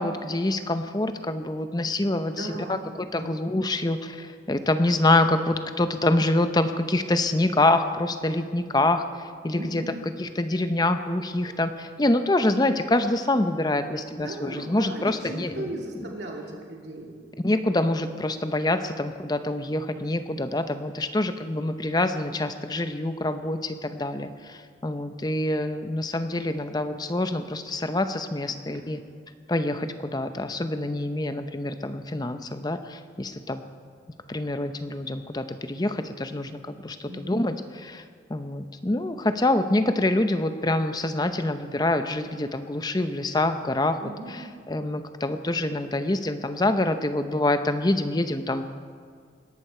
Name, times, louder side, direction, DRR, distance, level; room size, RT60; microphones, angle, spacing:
voice 1, 0.0-9.0 9.4-9.8 10.2-15.7 17.4-29.0 29.5-33.6 34.3-37.5 37.8-38.0 38.3-44.0 44.7-48.7, left 2 dB, 20° left, 9 dB, 0.6 m, -26 dB
voice 2, 2.3-3.5 9.5-10.0 14.1-17.2 28.5-28.9 37.0-37.4 44.0-44.4, right 1 dB, 65° right, -1 dB, 2.5 m, -38 dB
21.0 x 11.5 x 4.4 m, 2.1 s
head